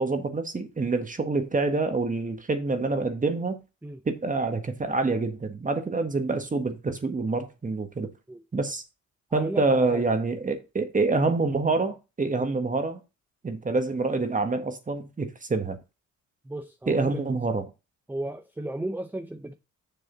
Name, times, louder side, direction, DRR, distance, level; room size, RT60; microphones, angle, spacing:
voice 1, 0.0-3.6 4.0-8.1 8.5-8.8 9.3-13.0 13.4-15.8 16.9-17.6, right 3 dB, 25° right, 1.6 m, -26 dB
voice 2, 9.3-10.1 16.4-17.2 17.5-17.6 18.1-19.5, right 1 dB, 5° right, 0.7 m, -35 dB
7.0 x 6.8 x 4.0 m
cardioid pair, 90°, 30 cm